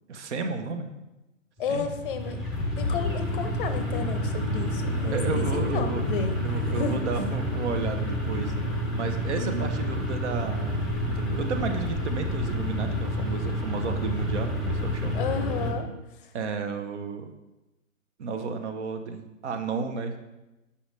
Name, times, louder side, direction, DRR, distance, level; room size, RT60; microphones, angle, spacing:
voice 1, 0.1-0.9 1.7-1.9 5.1-6.0 6.4-8.5 8.9-10.8 11.0-15.1 16.3-17.3 18.2-20.2, right 4 dB, 60° right, 7 dB, 0.9 m, -32 dB
voice 2, 1.6-2.4 2.8-6.4 6.6-7.0 9.4-9.7 15.1-15.9, left 6 dB, 40° left, 7 dB, 0.6 m, -32 dB
sound 1, 1.6-15.7, equal, ahead, 0.6 m, -29 dB
6.8 x 5.5 x 3.2 m, 1.0 s
hypercardioid pair, 130°, 40 cm